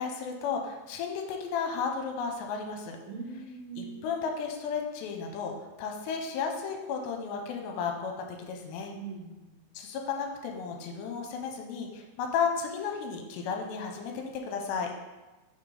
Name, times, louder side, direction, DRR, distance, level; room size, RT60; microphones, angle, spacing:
voice 1, 0.0-3.0 3.8-8.9 9.7-14.9, left 6 dB, 80° left, 3 dB, 2.8 m, -33 dB
voice 2, 3.1-4.0 9.0-9.5, right 5 dB, 75° right, -2 dB, 2.4 m, -41 dB
6.2 x 4.3 x 4.8 m, 1.1 s
omnidirectional pair, 5.2 m